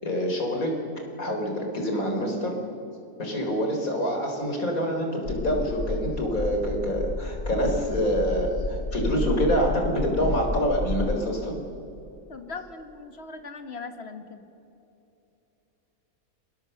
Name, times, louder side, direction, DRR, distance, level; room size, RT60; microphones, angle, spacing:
voice 1, 0.0-0.7 1.2-2.6 3.2-11.6, equal, 70° left, 2 dB, 4.4 m, -26 dB
sound 1, 5.3-11.2, left 2 dB, 25° left, 0.8 m, -31 dB
voice 2, 12.3-14.4, left 4 dB, 45° left, 7 dB, 2.0 m, -39 dB
30.0 x 21.5 x 6.7 m, 2.9 s
omnidirectional pair, 1.5 m